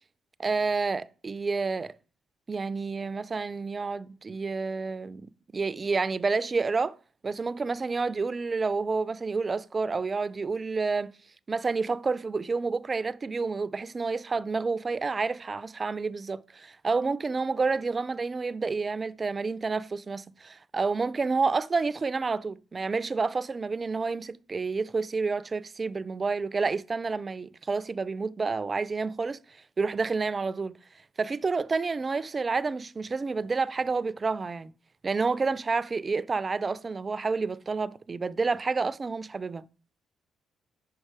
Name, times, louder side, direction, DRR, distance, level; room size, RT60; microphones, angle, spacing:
voice 1, 0.4-1.9 2.5-7.0 7.2-11.1 11.5-29.4 29.8-30.8 31.2-34.7 35.0-39.6, right 4 dB, 30° right, 0.3 m, -29 dB
5.5 x 5.4 x 4.7 m
cardioid pair, 90°, 0 cm